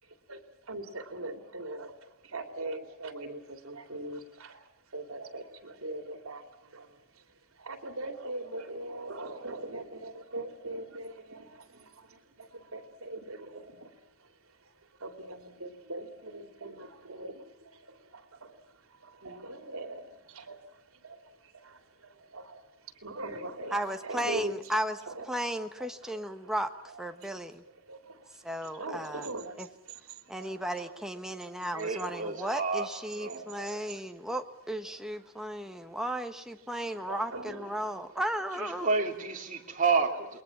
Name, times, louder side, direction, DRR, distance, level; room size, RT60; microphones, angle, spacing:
voice 1, 0.0-24.8 25.1-25.3 25.8-26.5 26.9-27.3 27.6-31.0 31.3-32.5 33.3-34.3 34.9-36.1 36.8-38.3, right 2 dB, 80° right, 3.0 m, -43 dB
voice 2, 23.7-25.0 25.3-26.7 27.0-27.6 28.4-29.3 29.6-29.7 30.3-38.9, right 1 dB, ahead, 1.4 m, -35 dB
voice 3, 31.7-33.4 38.5-40.3, right 4 dB, 40° right, 3.2 m, -30 dB
28.5 x 21.5 x 7.3 m
head